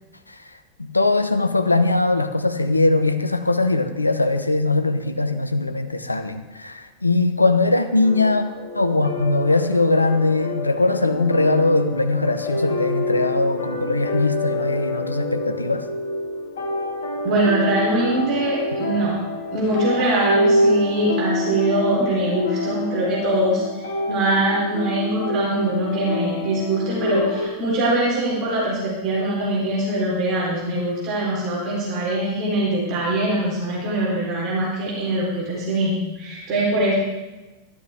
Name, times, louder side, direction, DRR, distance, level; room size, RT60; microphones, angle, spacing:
voice 1, 0.8-8.4 8.7-15.9, left 2 dB, 85° left, 9 dB, 0.7 m, -20 dB
sound 1, 8.0-27.5, left 1 dB, 60° left, 1.6 m, -26 dB
voice 2, 17.2-19.2 19.5-36.9, right 1 dB, 35° right, -5 dB, 4.1 m, -22 dB
12.5 x 12.0 x 3.7 m, 1.1 s
figure-of-eight pair, 90°, 0 cm